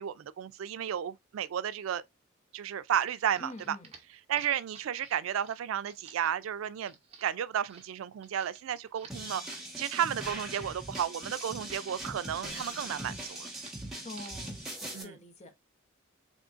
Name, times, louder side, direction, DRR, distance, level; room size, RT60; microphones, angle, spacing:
voice 1, 0.0-2.0 2.5-3.8 4.3-6.9 7.2-13.5 14.9-15.1, right 9 dB, 90° right, 0.3 m, -33 dB
sound 1, 3.1-12.1 12.3-13.1 13.4-13.8 14.1-14.5, right 5 dB, 30° right, 0.8 m, -54 dB
voice 2, 3.4-3.9 14.0-15.6, left 1 dB, 35° left, 0.7 m, -46 dB
sound 2, 9.1-15.0, right 1 dB, ahead, 1.3 m, -41 dB
3.6 x 3.6 x 2.4 m
head